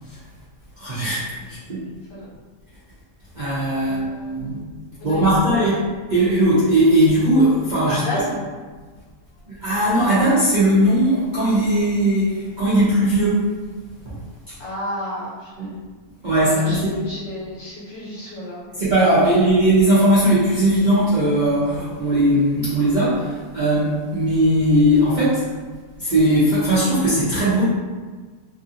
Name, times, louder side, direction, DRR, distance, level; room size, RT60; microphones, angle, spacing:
voice 1, 0.8-1.9 3.3-4.6 5.0-8.2 9.5-13.5 14.1-14.2 15.6-15.7 16.2-17.0 18.7-25.4 26.0-27.6, right 1 dB, 70° right, -11 dB, 0.4 m, -18 dB
voice 2, 3.8-4.6 5.0-5.7 7.9-8.4 14.6-15.7 16.4-18.6, left 1 dB, 55° left, -7 dB, 1.2 m, -32 dB
2.9 x 2.5 x 2.7 m, 1.4 s
omnidirectional pair, 1.8 m